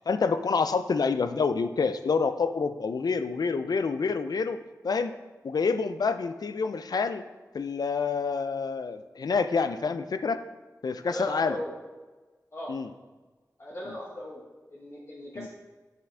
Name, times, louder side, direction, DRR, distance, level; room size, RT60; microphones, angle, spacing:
voice 1, 0.1-4.6 4.8-5.1 5.4-7.2 7.5-10.4 10.8-11.6 12.7-12.9 15.4-15.5, left 5 dB, 85° left, 10 dB, 0.4 m, -27 dB
voice 2, 11.0-11.7 12.5-12.7 13.6-15.5, equal, 45° left, -6 dB, 1.2 m, -38 dB
7.5 x 6.0 x 3.3 m, 1.3 s
wide cardioid pair, 85°, 7 cm